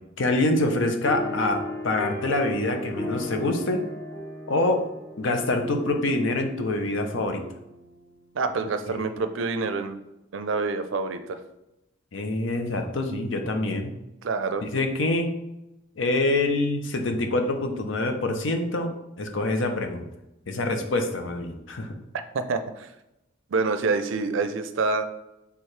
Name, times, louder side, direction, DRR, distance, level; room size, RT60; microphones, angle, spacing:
voice 1, 0.2-3.8 4.5-4.8 5.2-7.4 8.9-9.1 12.1-13.9 14.6-15.3 16.0-18.9 19.2-20.1 20.5-21.9, left 2 dB, 70° left, 5 dB, 0.6 m, -25 dB
sound 1, 1.0-7.9, left 1 dB, 10° left, 0.7 m, -36 dB
voice 2, 8.3-10.0 10.3-11.4 14.2-14.7 22.3-22.9 23.5-25.0, right 4 dB, 70° right, 9 dB, 0.4 m, -27 dB
4.6 x 3.4 x 3.2 m, 0.91 s
head